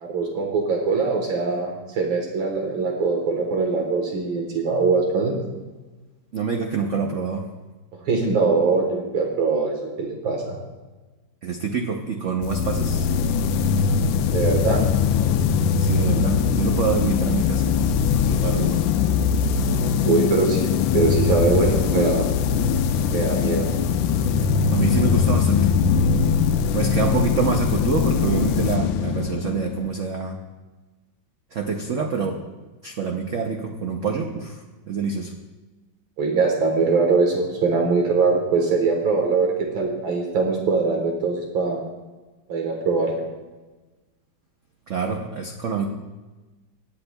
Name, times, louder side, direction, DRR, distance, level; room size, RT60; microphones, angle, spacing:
voice 1, 0.0-5.4 8.1-10.6 14.3-14.8 20.0-22.3 23.1-23.7 36.2-41.8 42.5-43.2, right 4 dB, 80° right, 1 dB, 2.1 m, -22 dB
voice 2, 6.3-7.5 11.4-13.1 15.8-17.7 18.2-18.8 24.7-25.7 26.7-30.4 31.5-32.4 32.8-34.6 34.9-35.3 44.9-45.9, right 5 dB, 60° right, 2 dB, 0.8 m, -26 dB
sound 1, 12.4-29.9, left 6 dB, 80° left, 1.3 m, -21 dB
19.5 x 8.7 x 2.3 m, 1.2 s
omnidirectional pair, 2.2 m